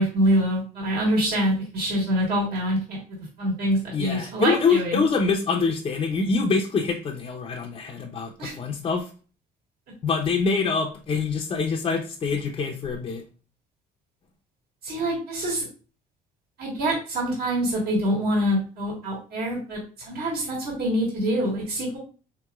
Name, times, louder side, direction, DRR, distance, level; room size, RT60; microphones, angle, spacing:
voice 1, 0.0-3.0 3.4-5.0 8.4-8.5 14.8-15.7 16.6-22.0, equal, 65° right, -4 dB, 1.5 m, -25 dB
voice 2, 3.9-9.1 10.0-13.2, left 4 dB, 35° left, 0 dB, 0.5 m, -25 dB
3.5 x 3.0 x 2.3 m, 0.37 s
cardioid pair, 110°, 17 cm